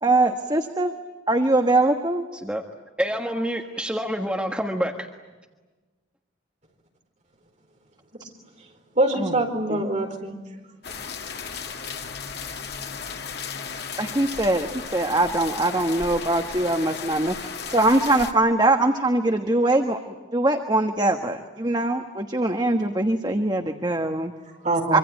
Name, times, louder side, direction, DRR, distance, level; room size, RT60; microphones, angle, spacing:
voice 1, 0.0-0.9 1.3-2.2 8.2-8.3 9.2-9.4 9.7-9.8 14.0-20.0 20.3-24.3 24.9-25.0, right 2 dB, 20° right, 5 dB, 1.3 m, -22 dB
voice 2, 2.3-2.6 3.0-5.1, equal, 5° right, 2 dB, 1.5 m, -27 dB
voice 3, 8.9-10.4 24.5-25.0, right 2 dB, 40° right, 3 dB, 4.7 m, -24 dB
sound 1, 10.8-18.3, left 5 dB, 55° left, 2.0 m, -35 dB
25.5 x 25.0 x 9.1 m, 1.2 s
head